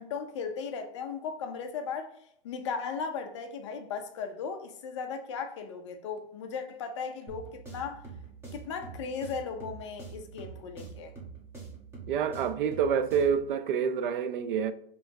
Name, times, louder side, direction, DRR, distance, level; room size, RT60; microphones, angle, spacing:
voice 1, 0.0-2.1 2.4-8.0 8.5-11.1, left 5 dB, 30° left, 0.4 m, -37 dB
sound 1, 7.3-13.5, right 5 dB, 10° right, 1.1 m, -45 dB
voice 2, 12.1-14.7, right 7 dB, 60° right, 0.4 m, -27 dB
5.6 x 3.0 x 2.7 m
hypercardioid pair, 155°, 30 cm